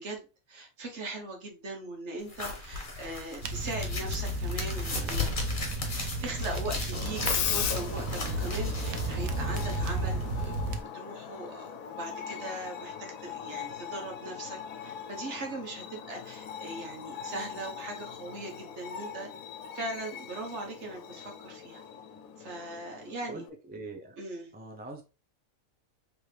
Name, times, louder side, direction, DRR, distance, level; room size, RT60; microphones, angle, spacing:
voice 1, 0.0-5.3 5.9-19.3 19.7-21.8 22.4-23.4 24.2-24.5, right 2 dB, 60° right, 2 dB, 1.4 m, -40 dB
sound 1, 2.3-10.4, left 3 dB, 40° left, 1.4 m, -38 dB
sound 2, 3.4-10.8, right 2 dB, 90° right, 1.1 m, -33 dB
Screech, 6.9-23.5, left 8 dB, 80° left, 1.1 m, -39 dB
voice 2, 23.3-24.2 24.5-25.0, right 2 dB, 10° right, 3 dB, 0.5 m, -43 dB
4.6 x 3.4 x 3.2 m, 0.31 s
omnidirectional pair, 1.4 m